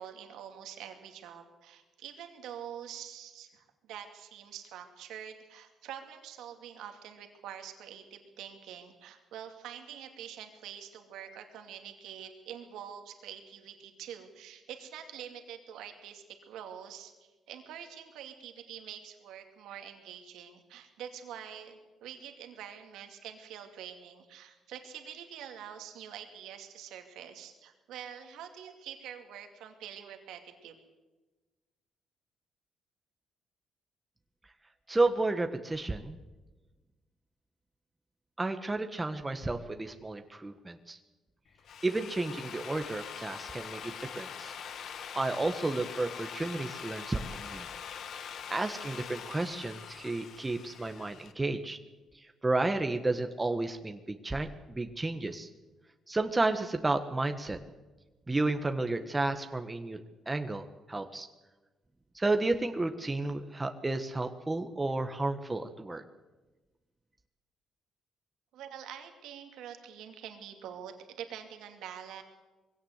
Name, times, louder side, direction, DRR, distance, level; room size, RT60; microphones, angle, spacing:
voice 1, 0.0-30.7 68.5-72.2, right 9 dB, 85° right, 5 dB, 2.4 m, -46 dB
voice 2, 34.9-36.2 38.4-41.0 41.8-44.5 45.1-47.7 48.5-51.8 52.4-55.5 56.1-57.6 58.3-60.0 60.3-61.3 62.1-66.0, right 2 dB, 15° right, 6 dB, 1.5 m, -32 dB
Drill, 41.5-51.3, left 7 dB, 65° left, 1.5 m, -43 dB
22.0 x 17.0 x 8.1 m, 1.2 s
cardioid pair, 90°, 0 cm